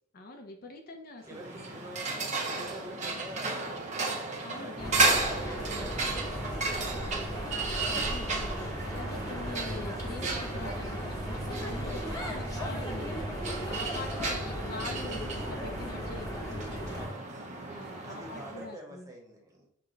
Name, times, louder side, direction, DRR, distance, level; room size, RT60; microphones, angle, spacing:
voice 1, 0.1-1.4 4.1-5.2 7.9-17.1 17.7-19.1, left 2 dB, 45° left, 3 dB, 0.6 m, -44 dB
voice 2, 1.3-3.7 4.6-6.4 6.7-7.6 12.0-12.3 14.1-14.5 16.8-17.3 18.0-19.7, right 1 dB, 15° right, 0 dB, 1.0 m, -46 dB
sound 1, 1.3-18.7, right 3 dB, 35° right, 0.6 m, -34 dB
sound 2, 4.8-17.1, equal, 15° left, 0.9 m, -36 dB
6.0 x 2.2 x 3.8 m, 0.64 s
head